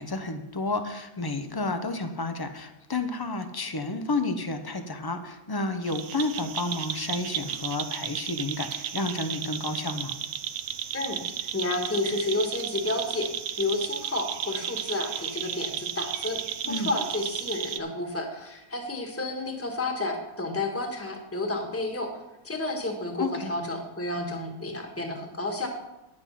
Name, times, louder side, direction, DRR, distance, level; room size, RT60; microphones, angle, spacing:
voice 1, 0.0-10.1 16.6-16.9 23.2-23.5, left 2 dB, 30° left, 8 dB, 0.4 m, -31 dB
sound 1, 5.9-17.8, right 9 dB, 70° right, 1.0 m, -34 dB
voice 2, 11.5-13.3 13.6-16.4 16.7-22.1 22.4-25.7, left 2 dB, 10° left, 2 dB, 1.4 m, -31 dB
10.0 x 7.9 x 5.6 m, 0.96 s
omnidirectional pair, 1.6 m